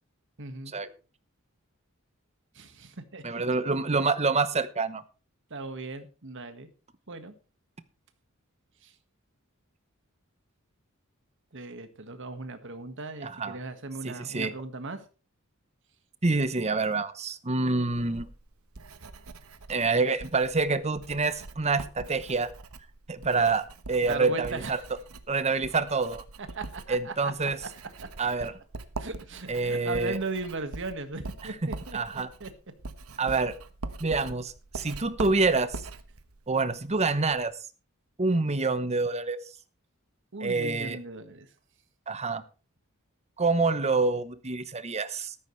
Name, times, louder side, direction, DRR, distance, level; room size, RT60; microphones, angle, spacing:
voice 1, 0.4-0.7 2.5-3.4 5.5-6.7 7.1-7.3 8.8-8.9 11.5-15.0 24.0-24.7 26.4-27.7 29.0-32.0 32.4-32.5 40.3-41.5, right 3 dB, 60° right, 9 dB, 1.7 m, -38 dB
voice 2, 3.2-5.0 13.2-13.6 14.0-14.5 16.2-18.3 19.7-22.5 23.1-24.8 25.3-26.2 26.9-27.6 28.2-28.5 29.5-30.2 31.6-32.3 33.2-33.6 34.0-35.8 36.5-37.5 38.2-39.4 40.4-41.0 42.1-42.4 43.4-45.3, right 3 dB, 30° right, 13 dB, 1.0 m, -27 dB
Writing, 17.9-37.4, right 3 dB, 90° right, 1.1 m, -43 dB
14.0 x 13.0 x 3.3 m, 0.34 s
head